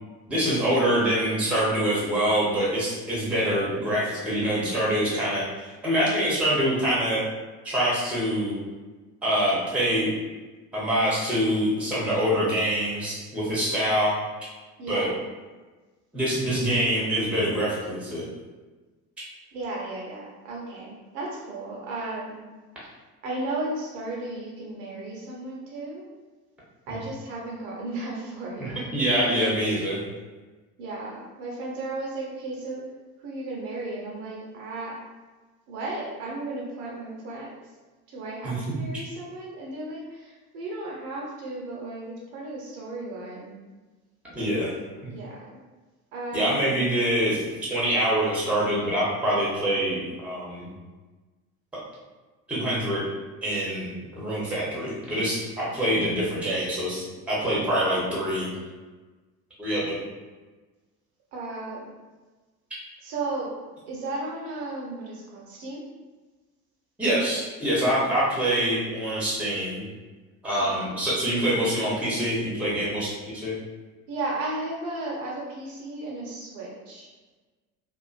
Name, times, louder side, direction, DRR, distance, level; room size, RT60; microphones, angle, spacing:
voice 1, 0.3-7.2 7.6-8.6 9.2-10.1 10.7-14.1 14.9-15.1 16.1-18.2 19.2-19.3 28.6-30.0 38.4-38.8 44.3-44.7 46.3-47.4 47.7-50.7 52.5-53.0 53.4-58.5 59.6-60.0 67.0-69.8 70.4-73.1 73.3-73.6, equal, 5° right, -7 dB, 0.7 m, -25 dB
voice 2, 14.8-15.2 19.5-22.4 23.2-26.1 26.9-28.8 30.8-32.8 33.2-35.0 35.7-37.5 38.1-43.5 45.1-45.4 46.1-46.9 61.3-61.9 63.0-63.5 63.9-65.8 70.7-70.9 74.1-77.1, right 2 dB, 50° right, -3 dB, 0.7 m, -34 dB
2.4 x 2.2 x 2.3 m, 1.3 s
figure-of-eight pair, 70°, 48 cm